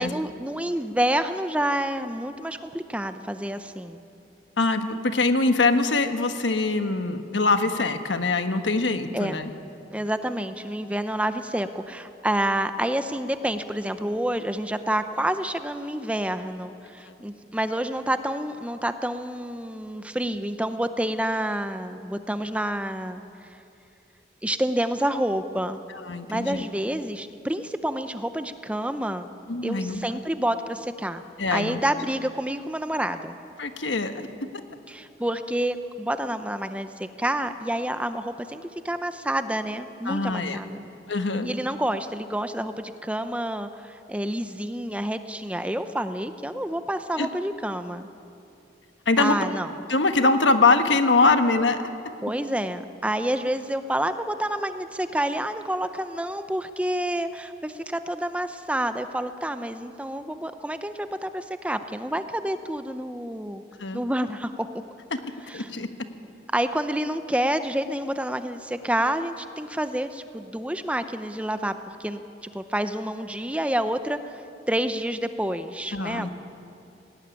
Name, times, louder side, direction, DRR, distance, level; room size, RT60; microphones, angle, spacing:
voice 1, 0.0-4.0 9.1-9.4 9.9-23.2 24.4-25.8 26.3-29.3 29.6-31.3 31.5-33.4 34.9-40.8 41.4-48.1 49.2-49.7 52.2-63.6 63.9-64.7 65.5-65.7 66.5-76.3, right 1 dB, 5° right, 9 dB, 0.7 m, -28 dB
voice 2, 4.6-9.5 26.1-26.6 29.5-30.2 31.4-31.8 33.6-34.3 40.0-40.6 41.1-41.5 47.2-47.3 49.1-49.4 49.9-51.8 63.8-64.0 65.5-65.9 75.9-76.3, left 3 dB, 85° left, 8 dB, 1.4 m, -23 dB
18.5 x 18.0 x 9.8 m, 2.7 s
head